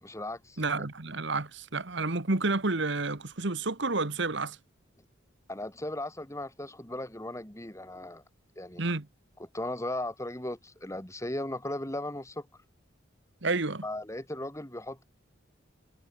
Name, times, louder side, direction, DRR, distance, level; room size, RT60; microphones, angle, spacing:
voice 1, 0.0-0.6 5.5-8.2 8.6-8.8 9.4-12.5 13.8-15.0, left 1 dB, 15° left, 3.1 m, -37 dB
voice 2, 0.6-4.6 8.8-9.1 13.4-13.8, right 3 dB, 60° right, 1.6 m, -30 dB
head